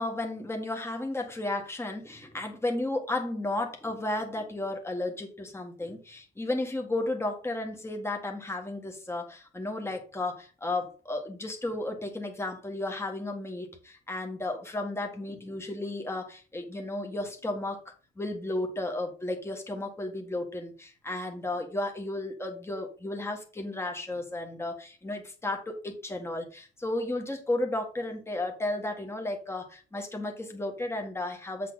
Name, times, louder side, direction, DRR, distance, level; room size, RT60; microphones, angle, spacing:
voice 1, 0.0-31.7, left 2 dB, 15° left, 2 dB, 1.8 m, -33 dB
7.5 x 5.9 x 4.1 m, 0.36 s
cardioid pair, 90°, 20 cm